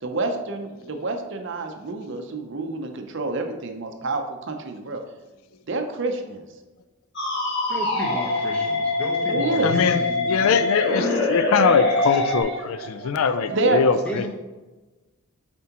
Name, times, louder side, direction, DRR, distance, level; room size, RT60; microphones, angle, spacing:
voice 1, 0.0-5.0 5.7-6.4 9.3-9.7 12.2-14.3, right 2 dB, 55° right, 5 dB, 0.6 m, -28 dB
sound 1, 7.2-12.4, left 2 dB, 50° left, 1.2 m, -24 dB
voice 2, 7.7-10.6 14.0-14.3, equal, 5° left, -3 dB, 1.0 m, -33 dB
voice 3, 9.6-10.0 10.3-14.2, left 6 dB, 75° left, 11 dB, 0.4 m, -22 dB
7.3 x 4.4 x 2.9 m, 1.2 s
head